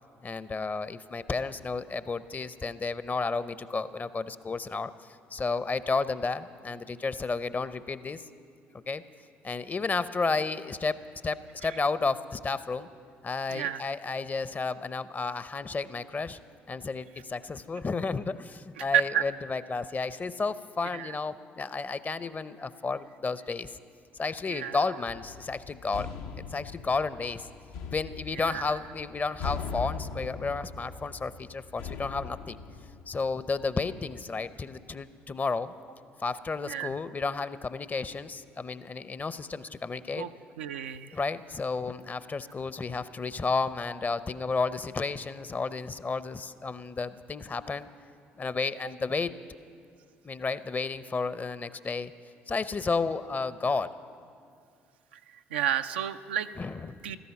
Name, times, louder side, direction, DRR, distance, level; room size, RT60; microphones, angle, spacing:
voice 1, 0.2-4.9 5.3-8.2 8.9-9.0 9.4-12.9 13.2-16.4 16.7-23.7 24.1-26.1 26.4-27.5 27.9-32.6 33.1-35.7 36.2-40.3 41.1-47.9 48.4-49.4 50.2-52.1 52.5-53.9 56.6-57.0, left 4 dB, 30° left, 14 dB, 0.6 m, -32 dB
voice 2, 13.5-13.8 18.8-19.3 20.9-21.2 24.5-24.8 28.3-28.6 36.7-36.9 40.2-40.3 40.6-41.2 55.1-55.2 55.5-56.5 57.0-57.2, right 10 dB, 90° right, 8 dB, 0.4 m, -30 dB
sound 1, 25.1-33.7, left 5 dB, 75° left, 0.7 m, -40 dB
15.5 x 13.5 x 5.9 m, 2.3 s
hypercardioid pair, 55°, 6 cm